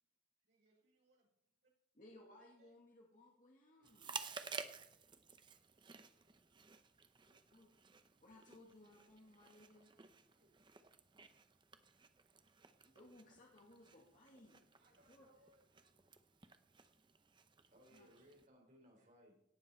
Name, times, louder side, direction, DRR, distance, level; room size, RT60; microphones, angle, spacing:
voice 1, 0.4-1.3 1.6-1.7 2.6-2.7 3.8-6.6 9.5-10.7 14.8-16.3, right 1 dB, 65° right, -3 dB, 5.8 m, -77 dB
voice 2, 1.9-4.1 7.3-7.7 8.2-9.9 12.8-14.6 15.1-15.3 17.9-18.1, left 1 dB, 45° left, -2 dB, 2.2 m, -62 dB
Chewing mastication, 3.8-18.5, right 5 dB, 25° right, 0.7 m, -54 dB
voice 3, 12.6-13.0 13.9-14.0 14.8-14.9 17.4-19.3, equal, 45° right, -1 dB, 4.6 m, -67 dB
17.5 x 8.4 x 4.4 m, 0.76 s
head